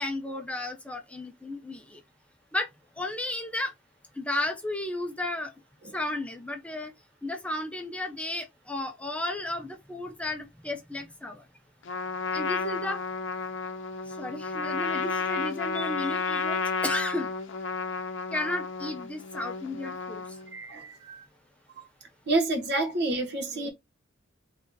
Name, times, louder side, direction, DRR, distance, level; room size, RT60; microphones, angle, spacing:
voice 1, 0.0-2.0 2.5-2.7 3.0-3.7 4.2-5.5 5.9-6.9 7.2-11.4 12.3-13.0 14.2-17.3 18.3-20.2, left 1 dB, 5° left, 0.5 m, -33 dB
Trumpet, 11.9-20.5, left 4 dB, 65° left, 0.6 m, -32 dB
voice 2, 20.5-21.2 22.3-23.7, right 2 dB, 55° right, 1.3 m, -29 dB
3.3 x 2.7 x 3.8 m
head